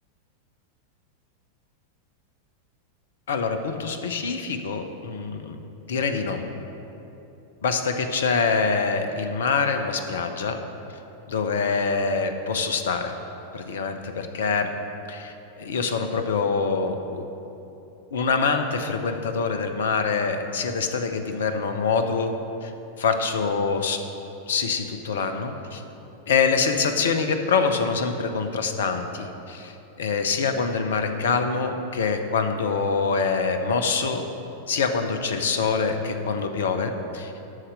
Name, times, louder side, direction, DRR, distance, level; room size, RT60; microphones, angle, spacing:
voice 1, 3.3-5.6 5.9-6.4 7.6-10.6 11.3-13.1 13.5-14.7 15.1-17.2 18.1-22.3 22.6-22.7 23.0-24.0 24.5-25.8 26.3-29.7 30.0-34.2 34.7-37.3, left 5 dB, 60° left, 7 dB, 0.8 m, -25 dB
12.5 x 4.3 x 7.8 m, 3.0 s
figure-of-eight pair, 90°, 0 cm